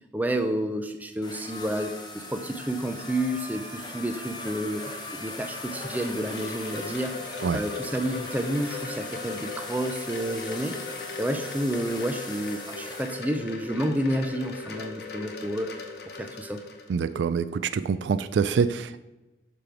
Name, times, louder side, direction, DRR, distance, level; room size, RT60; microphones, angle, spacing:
voice 1, 0.1-7.1 7.5-10.7 11.2-15.8 16.2-16.6, right 1 dB, 10° right, 6 dB, 0.5 m, -30 dB
sound 1, 1.2-13.2, left 2 dB, 25° left, 0.8 m, -39 dB
Wind chime, 4.9-17.2, left 4 dB, 60° left, 0.8 m, -39 dB
voice 2, 16.9-19.0, right 6 dB, 80° right, 13 dB, 0.3 m, -25 dB
6.9 x 3.3 x 5.9 m, 1.1 s
head